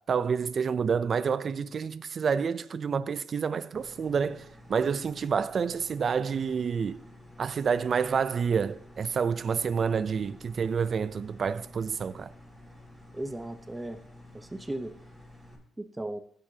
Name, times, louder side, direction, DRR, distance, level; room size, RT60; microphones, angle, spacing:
voice 1, 0.0-7.0 7.4-12.3, right 6 dB, 45° right, 0.4 m, -28 dB
sound 1, 3.7-15.5, left 1 dB, 5° left, 4.0 m, -51 dB
voice 2, 13.1-14.0 14.3-14.9 15.8-16.2, right 1 dB, 15° right, 0.8 m, -36 dB
16.0 x 7.7 x 2.8 m
cardioid pair, 90°, 0 cm